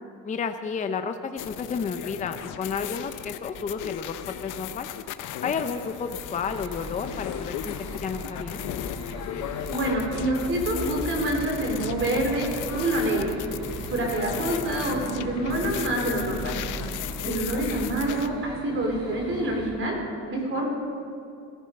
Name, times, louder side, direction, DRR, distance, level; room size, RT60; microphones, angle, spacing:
voice 1, 0.2-4.9 5.4-8.6 17.2-17.5, left 6 dB, 25° left, 7 dB, 0.6 m, -32 dB
sound 1, 1.4-18.3, left 10 dB, 75° left, 0.8 m, -36 dB
sound 2, 6.4-19.7, right 1 dB, 15° right, 4.9 m, -41 dB
voice 2, 9.7-13.3 13.9-16.6 17.2-20.0 20.3-20.7, right 1 dB, 40° right, 1 dB, 4.0 m, -27 dB
sound 3, 9.8-17.5, right 1 dB, 60° right, 4.0 m, -40 dB
18.0 x 15.0 x 5.3 m, 2.6 s
cardioid pair, 150°, 31 cm